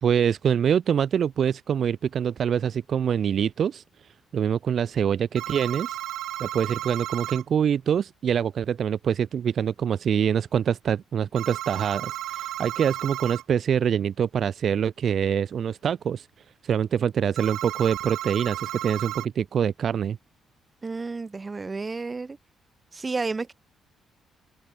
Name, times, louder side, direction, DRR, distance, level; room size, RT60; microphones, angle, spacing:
voice 1, 0.0-3.8 4.3-6.0 6.4-16.3 16.6-20.2, right 8 dB, 55° right, 0.4 m, -25 dB
sound 1, 5.4-7.4 11.4-13.4 17.4-19.3, right 14 dB, 85° right, 1.7 m, -33 dB
voice 2, 20.8-22.4 22.9-23.5, right 3 dB, 25° right, 1.3 m, -31 dB
open air
cardioid pair, 90°, 0 cm